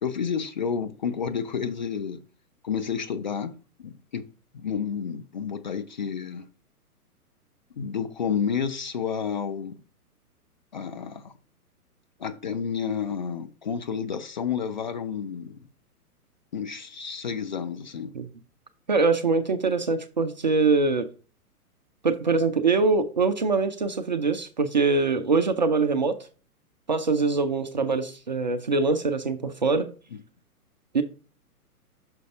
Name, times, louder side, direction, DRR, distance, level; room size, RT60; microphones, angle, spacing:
voice 1, 0.0-2.2 2.6-3.5 3.8-4.2 4.5-6.5 7.8-9.8 10.7-11.3 12.2-15.6 16.5-18.1, left 7 dB, 30° left, 0.4 m, -30 dB
voice 2, 18.9-21.1 22.0-26.2 26.9-29.9 30.9-31.0, right 4 dB, 30° right, 0.4 m, -23 dB
6.2 x 5.1 x 3.6 m
figure-of-eight pair, 120°, 46 cm